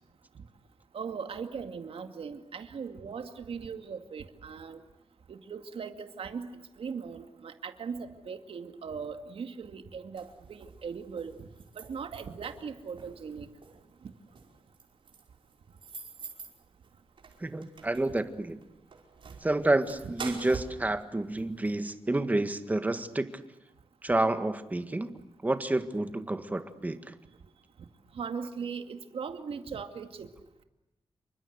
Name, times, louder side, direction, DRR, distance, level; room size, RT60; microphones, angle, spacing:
voice 1, 0.9-4.8 5.3-6.5 6.8-11.3 11.8-13.5 28.2-30.3, right 6 dB, 80° right, 7 dB, 2.3 m, -39 dB
sound 1, 10.2-21.8, right 5 dB, 60° right, 5.3 m, -47 dB
voice 2, 17.4-18.6 19.4-23.3 24.0-25.1 25.4-27.1, right 2 dB, 15° right, 9 dB, 1.7 m, -29 dB
28.5 x 24.5 x 8.1 m, 0.93 s
wide cardioid pair, 160°, 10 cm